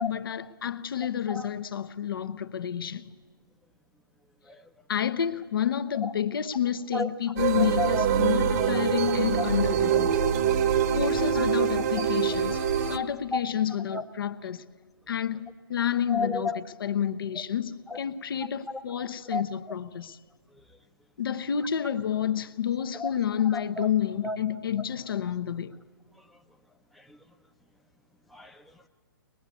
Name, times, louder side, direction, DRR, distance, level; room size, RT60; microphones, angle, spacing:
voice 1, 0.0-3.1 4.9-10.2 10.9-14.6 15.1-20.2 21.2-25.7, left 9 dB, 70° left, 1.0 m, -29 dB
sound 1, 7.4-13.0, right 8 dB, 40° right, 1.2 m, -25 dB
voice 2, 7.6-8.1 8.6-8.7 9.4-9.5 11.3-11.4 12.5-12.6 13.3-13.4 13.9-14.0 16.1-16.6 17.9-18.0 18.7-18.8 19.3-19.4 19.7-19.8 20.5-20.6 22.9-23.1 23.5-23.9 24.2-24.4 26.2-26.4 26.9-27.2 28.3-28.9, left 2 dB, ahead, 0.7 m, -33 dB
22.5 x 20.5 x 8.4 m
hypercardioid pair, 145°, 12 cm